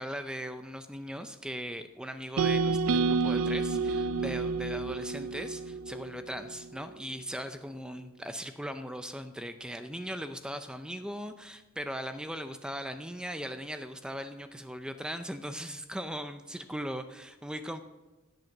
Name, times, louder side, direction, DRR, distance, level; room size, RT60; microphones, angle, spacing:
voice 1, 0.0-17.8, equal, 5° right, 9 dB, 0.4 m, -39 dB
sound 1, 2.4-6.5, right 4 dB, 80° right, 0.4 m, -29 dB
16.5 x 7.9 x 6.5 m, 1.2 s
head